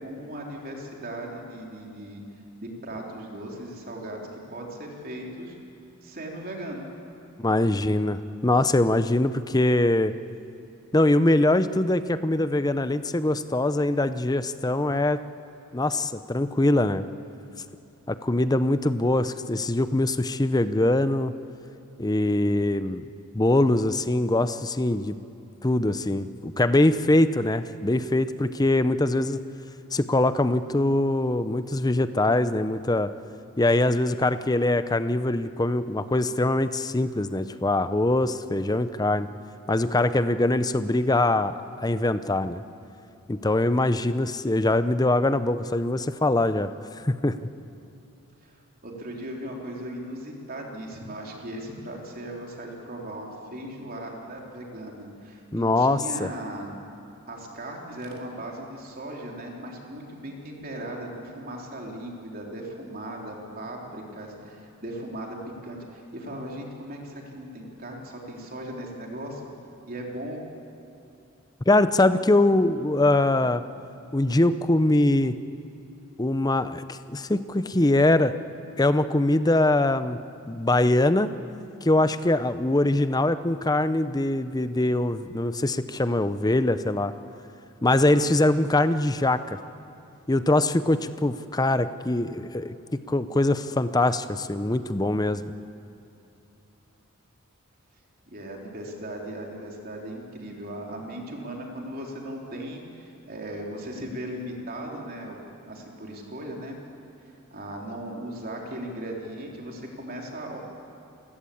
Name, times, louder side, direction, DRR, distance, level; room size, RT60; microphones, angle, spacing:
voice 1, 0.0-2.2 2.6-4.2 4.5-5.6 6.0-6.9 48.4-48.6 48.8-56.7 57.3-65.4 65.6-69.5 69.9-70.4 98.3-105.4 105.6-106.8 107.3-110.6, right 1 dB, 45° right, 0 dB, 3.6 m, -37 dB
voice 2, 7.4-10.1 10.9-15.2 15.7-17.1 18.1-21.3 22.0-23.1 23.3-25.2 25.6-29.4 29.9-33.1 33.6-39.3 39.7-42.6 43.3-46.7 47.0-47.3 55.5-56.3 71.7-73.6 74.1-75.4 76.2-78.4 78.8-80.2 80.5-81.3 81.8-87.1 87.8-89.6 90.3-95.4, left 2 dB, 15° left, 12 dB, 0.6 m, -23 dB
28.5 x 16.0 x 8.6 m, 2.7 s
head